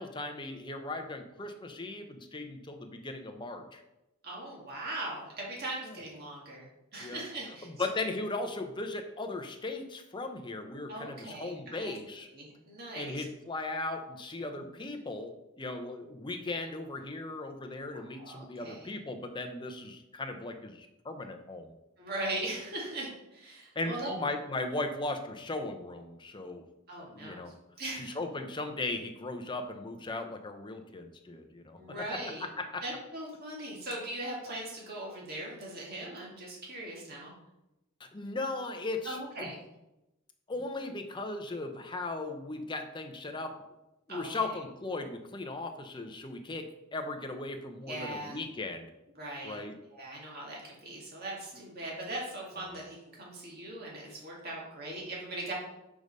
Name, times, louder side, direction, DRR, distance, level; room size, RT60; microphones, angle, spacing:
voice 1, 0.0-3.8 5.9-6.0 7.0-7.2 7.6-12.3 12.9-21.7 23.7-26.6 27.0-27.5 27.9-32.2 32.6-32.8 38.0-39.5 40.5-43.6 44.1-48.9 49.4-49.8, left 2 dB, 20° left, 6 dB, 0.6 m, -37 dB
voice 2, 4.2-6.7 6.9-7.7 10.9-12.0 12.3-13.2 14.5-14.6 17.9-18.9 22.0-24.2 26.9-27.4 27.8-28.2 31.8-32.4 32.8-37.3 39.0-39.6 44.1-44.3 47.9-48.4 49.2-49.6 49.9-55.5, right 1 dB, 45° right, -3 dB, 1.8 m, -40 dB
5.3 x 4.8 x 5.3 m, 0.91 s
head